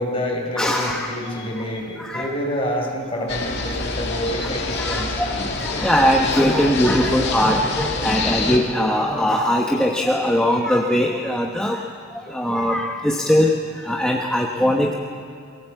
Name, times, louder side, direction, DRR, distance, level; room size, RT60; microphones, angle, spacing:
voice 1, 0.0-5.2, left 1 dB, 25° left, -1 dB, 4.6 m, -27 dB
voice 2, 0.6-1.4 2.0-2.3 3.2-3.3 4.4-4.5 4.8-11.8 12.3-14.9, equal, 5° left, -1 dB, 1.0 m, -21 dB
sound 1, 3.3-8.6, left 3 dB, 50° left, 2.3 m, -27 dB
22.5 x 17.0 x 8.0 m, 2.3 s
head